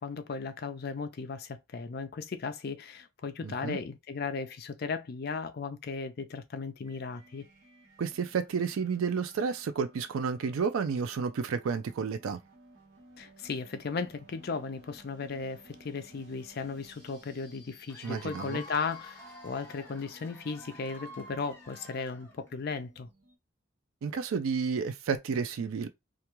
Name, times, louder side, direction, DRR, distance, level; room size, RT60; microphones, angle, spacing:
voice 1, 0.0-7.5 13.2-23.1, left 4 dB, 50° left, 0.4 m, -36 dB
voice 2, 3.4-3.8 8.0-12.4 18.0-18.6 24.0-25.9, right 5 dB, 85° right, 0.4 m, -31 dB
sound 1, 6.8-23.4, right 1 dB, 70° right, 1.0 m, -58 dB
Cheering / Applause / Crowd, 17.9-22.6, left 1 dB, 10° left, 0.9 m, -49 dB
2.4 x 2.2 x 2.9 m
head